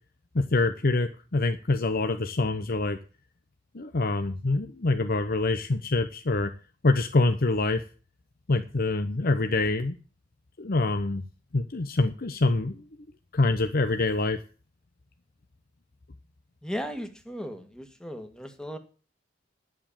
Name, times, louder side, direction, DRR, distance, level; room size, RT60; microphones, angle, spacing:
voice 1, 0.3-3.0 3.7-6.5 6.8-7.8 8.5-10.0 10.6-11.2 11.5-12.8 13.3-14.4, left 2 dB, 50° left, 8 dB, 0.8 m, -25 dB
voice 2, 16.6-18.8, equal, 5° left, 7 dB, 1.7 m, -36 dB
11.0 x 7.7 x 7.3 m, 0.36 s
head